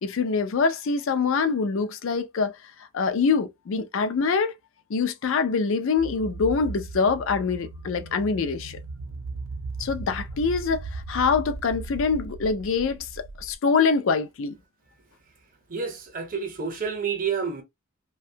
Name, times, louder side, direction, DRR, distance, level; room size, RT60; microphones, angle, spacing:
voice 1, 0.0-2.6 2.9-4.5 4.9-8.8 9.8-14.6, left 5 dB, 65° left, 0.4 m, -24 dB
sound 1, 6.0-13.5, right 3 dB, 80° right, 0.5 m, -37 dB
voice 2, 15.7-17.6, right 6 dB, 40° right, 0.7 m, -29 dB
2.6 x 2.2 x 2.7 m
head